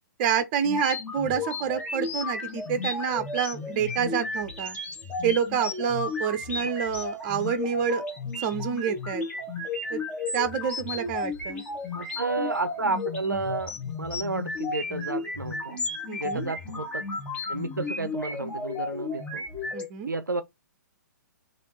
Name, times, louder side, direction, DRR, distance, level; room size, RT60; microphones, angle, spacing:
voice 1, 0.2-4.8 5.2-8.0 8.4-9.2 9.9-10.0 10.3-11.6 16.1-16.5 19.7-20.1, right 8 dB, 30° right, 0.7 m, -28 dB
sound 1, 0.6-19.9, left 3 dB, 10° left, 1.0 m, -33 dB
voice 2, 11.9-13.7 14.0-15.8 16.2-17.0 17.5-19.4 20.1-20.4, right 3 dB, 85° right, 0.4 m, -31 dB
3.4 x 2.6 x 4.1 m
figure-of-eight pair, 120°, 10 cm